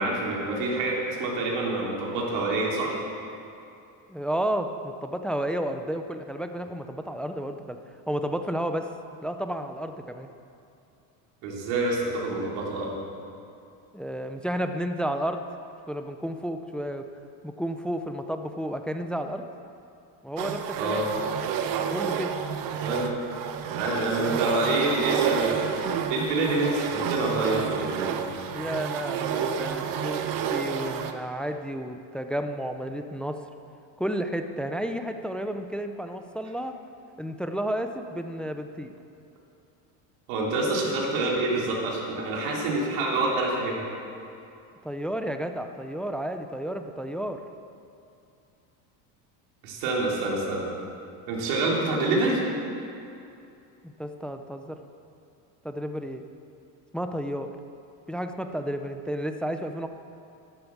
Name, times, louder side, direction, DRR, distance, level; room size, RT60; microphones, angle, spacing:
voice 1, 0.0-3.0 11.4-12.9 20.8-21.1 22.8-23.2 23.7-25.7 26.1-28.3 40.3-43.8 49.6-50.6 51.3-52.4, right 2 dB, 80° right, -3 dB, 3.7 m, -27 dB
voice 2, 4.1-7.8 8.1-8.9 9.2-10.3 13.9-15.4 15.9-17.1 17.4-19.4 20.2-21.0 21.9-22.3 28.5-30.2 30.5-33.4 34.0-36.7 37.2-39.0 44.8-47.4 53.8-54.8 55.6-56.2 56.9-57.5 58.1-59.9, equal, ahead, 7 dB, 0.4 m, -31 dB
sound 1, 20.4-31.1, right 8 dB, 55° right, 1.1 m, -30 dB
12.5 x 11.5 x 7.2 m, 2.6 s
cardioid pair, 145°, 42 cm